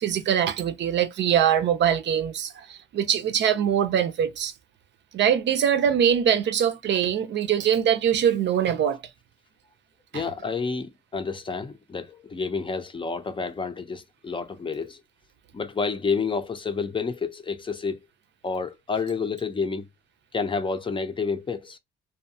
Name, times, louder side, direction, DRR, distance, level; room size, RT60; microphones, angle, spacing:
voice 1, 0.0-4.5 5.1-9.0 10.1-10.2, right 9 dB, 60° right, 0.5 m, -23 dB
voice 2, 10.1-15.0 15.5-18.0 18.4-19.9 20.3-21.8, left 5 dB, 25° left, 0.5 m, -29 dB
2.6 x 2.2 x 2.7 m
supercardioid pair, 75°, 21 cm